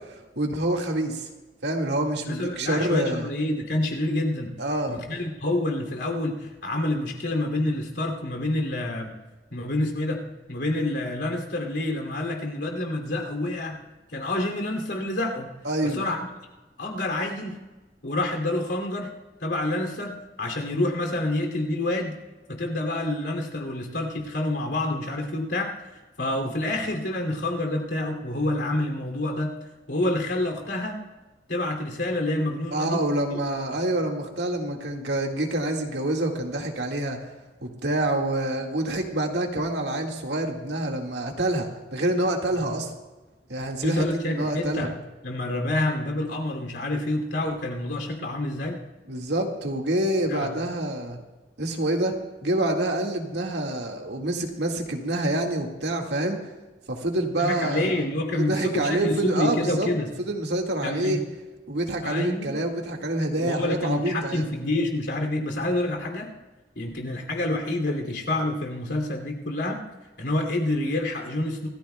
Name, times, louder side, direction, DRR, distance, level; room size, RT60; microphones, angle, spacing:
voice 1, 0.4-1.3 1.6-3.3 4.6-5.2 15.6-16.0 32.7-37.3 37.6-42.9 43.5-44.9 49.1-51.2 51.6-52.2 52.4-56.4 56.9-57.9 58.3-59.9 60.2-61.2 61.7-64.5, right 1 dB, 80° right, 1 dB, 1.9 m, -27 dB
voice 2, 2.2-4.5 4.9-9.1 9.5-10.2 10.5-13.8 14.1-15.5 15.8-16.3 16.8-17.6 18.0-19.1 19.4-22.1 22.5-25.7 26.2-29.5 29.9-31.0 31.5-33.0 33.7-33.8 42.5-42.7 43.8-44.9 45.2-48.8 50.3-50.5 57.4-60.1 60.8-61.2 62.0-62.5 63.4-66.3 66.8-69.8 70.2-71.7, left 1 dB, 90° left, 2 dB, 2.7 m, -28 dB
26.5 x 14.5 x 2.3 m, 1.2 s
head